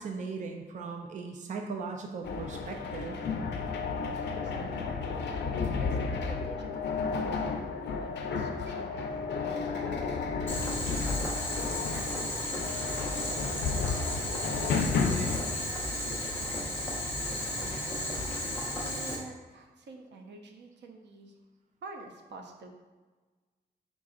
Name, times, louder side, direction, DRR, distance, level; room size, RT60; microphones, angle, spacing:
voice 1, 0.0-3.2, right 4 dB, 45° right, 3 dB, 0.4 m, -38 dB
sound 1, 2.2-15.4, left 4 dB, 90° left, 0.5 m, -32 dB
voice 2, 4.3-5.2 5.8-11.0 11.9-15.6 16.0-18.1 18.8-21.3 21.8-22.7, right 2 dB, 90° right, 3 dB, 0.6 m, -49 dB
Boiling, 10.5-19.2, left 1 dB, 15° left, 0.7 m, -34 dB
4.7 x 3.9 x 2.4 m, 1.3 s
wide cardioid pair, 180°, 18 cm